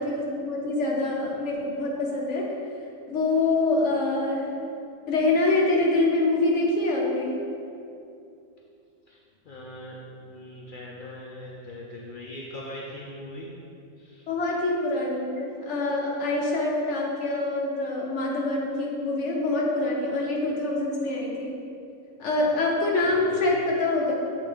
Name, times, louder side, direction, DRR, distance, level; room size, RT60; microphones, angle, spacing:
voice 1, 0.0-2.5 3.1-4.5 5.1-7.3 14.3-21.5 22.2-24.1, left 2 dB, 55° left, -3 dB, 1.2 m, -25 dB
voice 2, 9.4-13.5 14.0-14.3 23.0-23.6, left 1 dB, 80° left, -4 dB, 0.4 m, -41 dB
7.3 x 3.8 x 3.4 m, 2.6 s
omnidirectional pair, 1.6 m